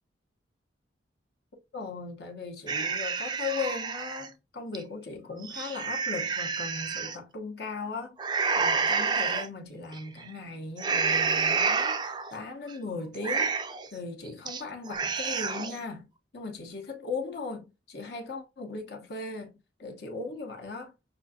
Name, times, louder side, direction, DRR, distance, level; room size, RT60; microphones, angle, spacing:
voice 1, 1.7-8.2 8.6-16.1 16.3-20.9, left 4 dB, 55° left, 0.9 m, -38 dB
sound 1, 2.7-4.3 4.7-4.8 5.3-7.2 8.2-9.5 9.9-10.3 10.8-12.3 12.7-12.8 13.1-13.9 14.3-14.6 14.9-15.8, right 5 dB, 25° right, 0.3 m, -29 dB
6.0 x 2.5 x 2.7 m
head